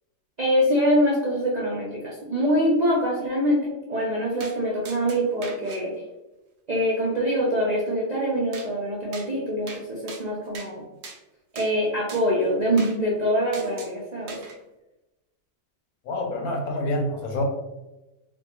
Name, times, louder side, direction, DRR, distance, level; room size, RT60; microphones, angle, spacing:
voice 1, 0.4-5.9 6.7-10.8 11.5-14.4, equal, 90° right, -4 dB, 0.3 m, -24 dB
sound 1, 4.4-4.6 4.9-5.8 8.5-8.7 9.1-9.3 9.7-9.8 10.1-10.7 11.0-11.2 11.6-11.7 12.1-12.2 12.8-13.0 13.5-13.9 14.3-14.6, right 4 dB, 60° right, 0.7 m, -40 dB
voice 2, 16.0-17.4, left 1 dB, 70° left, 2 dB, 1.0 m, -27 dB
4.1 x 2.2 x 2.8 m, 1.0 s
omnidirectional pair, 1.7 m